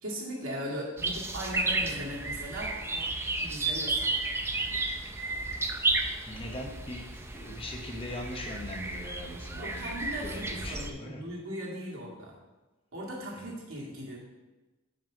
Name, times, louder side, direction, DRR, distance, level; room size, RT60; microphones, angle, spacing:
voice 1, 0.0-2.8 3.4-4.3 9.6-12.4 12.9-14.2, equal, 70° right, -4 dB, 2.1 m, -38 dB
sound 1, 1.0-10.9, right 2 dB, 10° right, 0.4 m, -33 dB
voice 2, 6.2-11.2 13.3-13.5, left 1 dB, 25° left, 1 dB, 0.9 m, -41 dB
5.6 x 5.1 x 6.1 m, 1.2 s
head